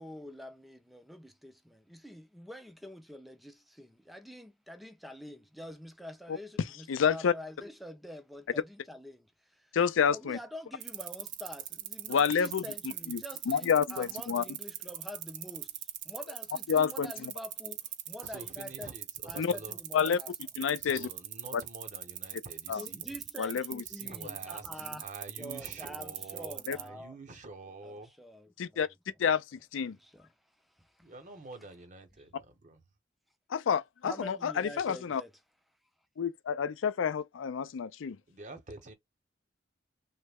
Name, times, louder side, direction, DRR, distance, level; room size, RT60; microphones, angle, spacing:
voice 1, 0.0-9.8 10.1-18.9 19.2-20.3 22.7-25.1 25.4-27.2 27.8-28.9 29.9-30.3 30.8-31.1 34.0-35.3, left 1 dB, ahead, 0.4 m, -46 dB
voice 2, 6.9-7.3 9.7-10.4 12.1-14.4 16.7-17.3 19.4-19.5 19.9-20.2 20.6-21.1 21.5-21.6 22.7-22.8 23.4-23.8 26.7-26.8 28.6-28.9 29.2-29.4 29.7-30.0 33.5-35.2 36.2-38.2, left 7 dB, 90° left, 0.4 m, -29 dB
sound 1, 10.8-26.9, right 13 dB, 65° right, 0.5 m, -40 dB
voice 3, 18.2-19.8 20.8-23.1 23.8-28.2 31.0-32.8 38.3-38.9, right 3 dB, 40° right, 0.8 m, -47 dB
3.1 x 2.1 x 3.4 m
head